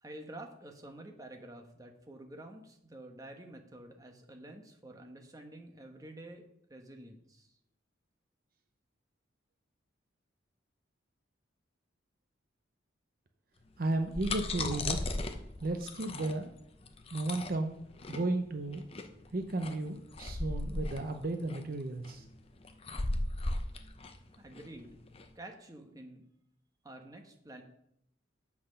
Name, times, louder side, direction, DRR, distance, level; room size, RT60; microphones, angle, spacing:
voice 1, 0.0-6.4 6.7-7.5 24.4-24.9 25.3-26.2 26.8-27.6, right 1 dB, 20° right, 3 dB, 1.0 m, -49 dB
sound 1, 13.8-25.3, left 2 dB, 30° left, 0.7 m, -37 dB
voice 2, 13.8-15.0 15.6-16.5 17.1-17.8 18.1-18.8 19.3-22.3, right 2 dB, 50° right, 6 dB, 0.7 m, -34 dB
7.8 x 5.9 x 6.6 m, 0.76 s
head